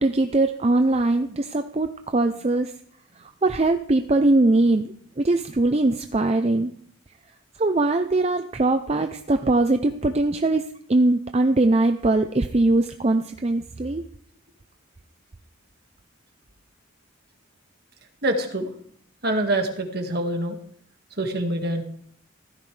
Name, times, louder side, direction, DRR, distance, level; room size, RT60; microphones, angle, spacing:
voice 1, 0.0-2.7 3.4-6.7 7.6-10.6 10.9-14.0, right 2 dB, 30° right, 7 dB, 0.5 m, -21 dB
voice 2, 18.2-18.7 19.2-20.6 21.2-21.8, right 1 dB, 50° right, 4 dB, 1.8 m, -25 dB
16.0 x 13.5 x 3.3 m, 0.63 s
head